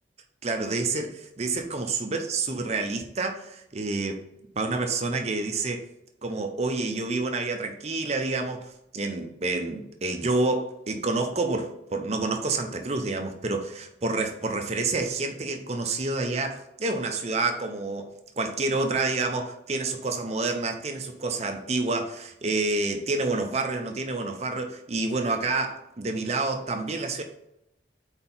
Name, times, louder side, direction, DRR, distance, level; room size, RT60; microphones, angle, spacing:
voice 1, 0.4-4.2 4.6-5.8 6.2-27.2, right 3 dB, 35° right, 5 dB, 0.6 m, -28 dB
4.4 x 4.4 x 5.5 m, 0.81 s
head